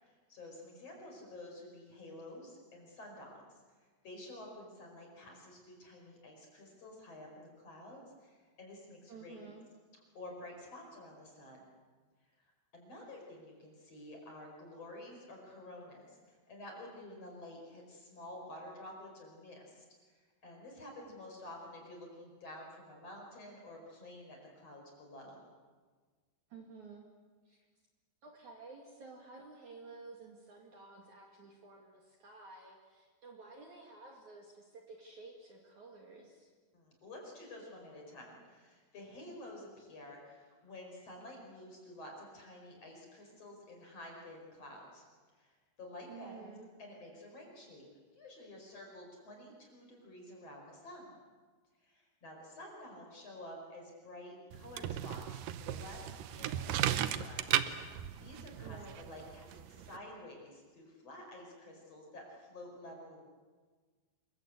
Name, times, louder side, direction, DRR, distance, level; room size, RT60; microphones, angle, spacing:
voice 1, 0.0-3.6 4.0-9.5 10.1-11.6 12.7-25.4 36.7-45.0 45.3-47.9 48.1-51.2 51.8-57.5 58.2-63.2, left 1 dB, 35° left, 0 dB, 5.6 m, -50 dB
voice 2, 9.1-9.6 26.5-27.1 27.4-27.7 28.2-36.5 46.1-46.7 58.6-59.0, right 4 dB, 50° right, 1 dB, 3.1 m, -52 dB
sound 1, 54.5-60.0, right 11 dB, 85° right, 1.9 m, -36 dB
26.5 x 22.5 x 8.2 m, 1.5 s
omnidirectional pair, 5.1 m